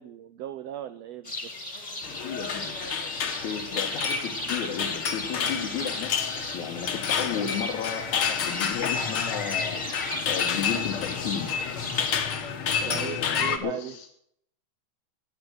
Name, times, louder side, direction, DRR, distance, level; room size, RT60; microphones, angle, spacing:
voice 1, 0.0-1.5 12.8-14.0, right 11 dB, 75° right, 9 dB, 1.6 m, -37 dB
sound 1, 1.2-12.2, left 2 dB, 15° left, 1.6 m, -36 dB
sound 2, 2.0-13.6, left 7 dB, 55° left, 1.8 m, -30 dB
voice 2, 2.2-2.8 3.4-11.5 12.8-14.1, left 8 dB, 75° left, 1 dB, 2.7 m, -34 dB
15.5 x 10.5 x 6.4 m, 0.70 s
omnidirectional pair, 3.5 m